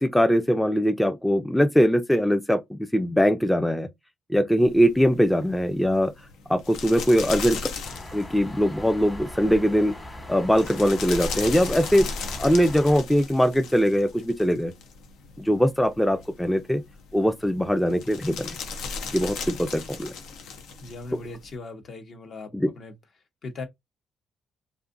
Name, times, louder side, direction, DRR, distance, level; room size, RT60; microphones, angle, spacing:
voice 1, 0.0-3.9 4.3-6.1 6.5-7.7 8.1-9.9 10.3-12.1 12.4-14.7 15.4-16.8 17.1-18.6 19.1-20.1 21.1-21.2 22.5-22.7, equal, 5° left, 0.4 m, -21 dB
sound 1, 4.6-21.6, left 4 dB, 85° left, 0.5 m, -37 dB
sound 2, 7.8-13.0, left 1 dB, 25° left, 1.1 m, -40 dB
voice 2, 20.8-22.5 22.7-22.9 23.4-23.6, left 3 dB, 55° left, 0.9 m, -38 dB
2.6 x 2.4 x 2.5 m
cardioid pair, 90°, 0 cm